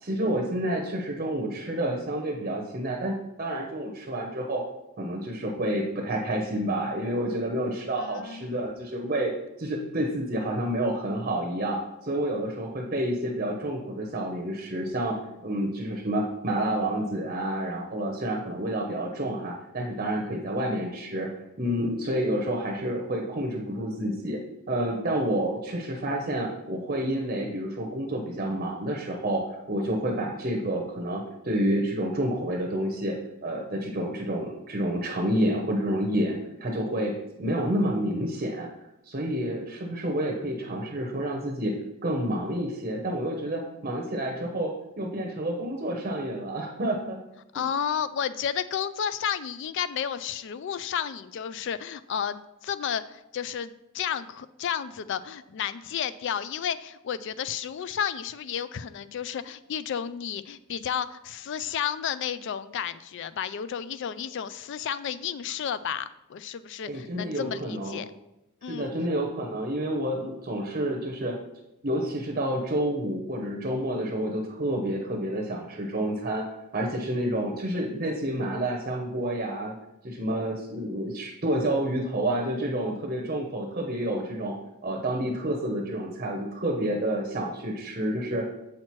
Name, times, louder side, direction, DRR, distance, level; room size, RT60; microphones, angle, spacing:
voice 1, 0.0-4.6 5.0-9.3 9.6-15.2 15.4-21.3 21.6-24.4 24.7-29.4 29.7-33.2 33.4-37.1 37.4-38.7 39.1-41.7 42.0-47.2 66.9-68.0 68.7-71.4 71.8-76.5 76.7-79.7 80.0-84.6 84.8-88.5, right 1 dB, 35° right, 0 dB, 0.7 m, -29 dB
voice 2, 8.0-8.5 47.5-68.1 68.6-68.9, left 8 dB, 55° left, 14 dB, 0.3 m, -32 dB
7.5 x 5.8 x 3.1 m, 0.89 s
head